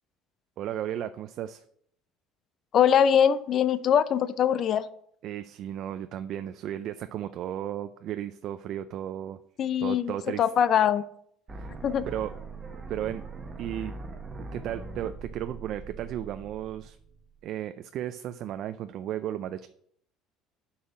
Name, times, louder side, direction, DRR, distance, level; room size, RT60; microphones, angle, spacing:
voice 1, 0.6-1.6 5.2-9.4 9.8-10.4 11.5-11.7 12.1-12.3 12.9-13.2 13.6-13.9 14.5-17.0 17.4-19.7, right 11 dB, 55° right, 10 dB, 0.4 m, -34 dB
voice 2, 2.7-4.9 9.6-10.1 10.4-11.0 11.8-12.1, left 8 dB, 45° left, 14 dB, 0.5 m, -22 dB
sound 1, 11.5-17.5, right 3 dB, 25° right, 1.1 m, -41 dB
6.4 x 5.6 x 7.0 m, 0.67 s
cardioid pair, 120°, 0 cm